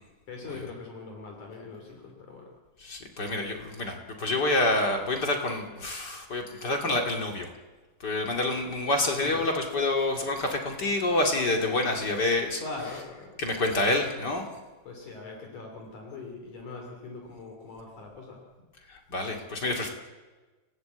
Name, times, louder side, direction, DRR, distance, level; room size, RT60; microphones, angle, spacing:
voice 1, 0.3-2.5 9.2-9.4 12.6-13.3 14.9-18.4, left 3 dB, 55° left, 1 dB, 4.2 m, -41 dB
voice 2, 2.8-7.5 8.0-12.6 13.4-14.4 18.9-19.9, left 2 dB, 30° left, 2 dB, 2.5 m, -27 dB
29.5 x 17.5 x 8.2 m, 1.3 s
omnidirectional pair, 4.4 m